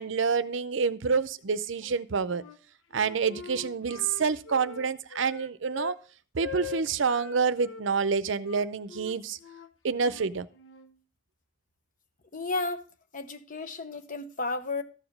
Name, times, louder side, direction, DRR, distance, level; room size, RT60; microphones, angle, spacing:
voice 1, 0.0-2.4 2.9-6.0 6.3-9.4 9.8-10.5, right 5 dB, 70° right, 0.6 m, -28 dB
Wind instrument woodwind instrument, 1.8-2.6 2.9-6.0 6.4-7.8 8.4-10.9, left 7 dB, 75° left, 1.0 m, -42 dB
voice 2, 12.3-12.9 13.1-14.8, left 3 dB, 40° left, 0.9 m, -33 dB
13.5 x 4.9 x 5.3 m
head